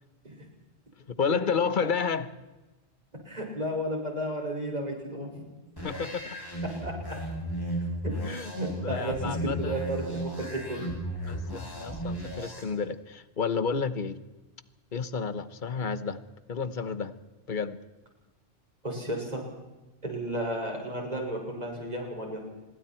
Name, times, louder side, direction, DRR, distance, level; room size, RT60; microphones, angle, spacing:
voice 1, 1.1-2.3 5.8-6.4 8.2-8.5 8.8-9.7 11.3-14.2 14.9-16.2 16.5-17.1 17.5-17.8, left 5 dB, 45° left, 13 dB, 1.2 m, -31 dB
voice 2, 3.3-5.4 6.8-6.9 8.0-8.1 8.5-10.9 18.8-19.4 20.0-22.4, right 1 dB, 35° right, 0 dB, 6.1 m, -33 dB
sound 1, 5.8-12.6, right 1 dB, 20° left, 7.8 m, -35 dB
26.0 x 23.0 x 4.5 m, 1.1 s
omnidirectional pair, 1.2 m